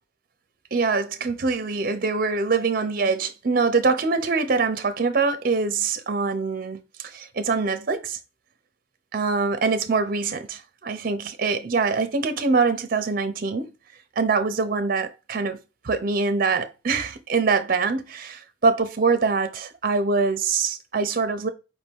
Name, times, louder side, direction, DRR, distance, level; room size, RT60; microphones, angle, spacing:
voice 1, 0.7-8.2 9.1-13.7 14.2-15.6 15.8-21.5, right 4 dB, 55° right, 0.6 m, -24 dB
4.8 x 2.6 x 3.5 m
head